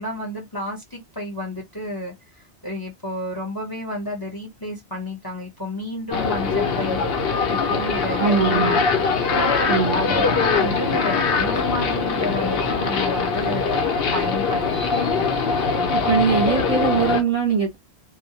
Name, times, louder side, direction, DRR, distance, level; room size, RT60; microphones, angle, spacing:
voice 1, 0.0-7.0 7.5-8.8 9.2-9.4 9.9-15.3, left 1 dB, 25° left, 0.7 m, -31 dB
sound 1, 6.1-17.2, left 4 dB, 65° left, 0.7 m, -22 dB
voice 2, 8.2-8.8 9.7-10.1 16.1-17.8, right 6 dB, 35° right, 0.8 m, -21 dB
2.2 x 2.0 x 2.8 m
omnidirectional pair, 1.1 m